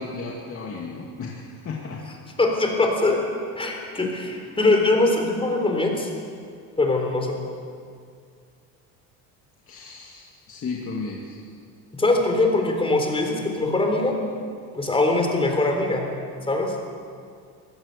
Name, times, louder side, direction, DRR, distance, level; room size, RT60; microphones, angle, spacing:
voice 1, 0.0-2.0 9.7-11.4, left 4 dB, 40° left, -2 dB, 2.4 m, -34 dB
voice 2, 2.4-3.2 3.6-6.1 6.8-7.3 11.9-14.1 14.7-16.1 16.5-16.7, left 2 dB, 15° left, 2 dB, 3.8 m, -22 dB
25.0 x 16.0 x 6.8 m, 2.2 s
cardioid pair, 125°, 36 cm